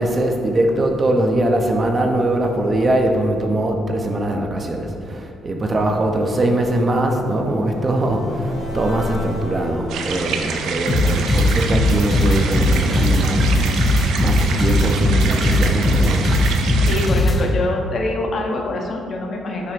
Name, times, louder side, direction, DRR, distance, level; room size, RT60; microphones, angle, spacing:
voice 1, 0.0-13.5 14.2-16.2, right 1 dB, 25° right, 3 dB, 0.5 m, -21 dB
sound 1, 5.4-12.6, left 1 dB, 65° left, 1.2 m, -34 dB
sound 2, 9.9-17.1, right 5 dB, 80° right, 0.5 m, -28 dB
sound 3, 10.9-17.4, left 1 dB, 30° left, 1.1 m, -17 dB
voice 2, 16.9-19.7, left 2 dB, 45° left, 1 dB, 0.8 m, -24 dB
5.8 x 3.3 x 5.0 m, 2.6 s
cardioid pair, 140°, 0 cm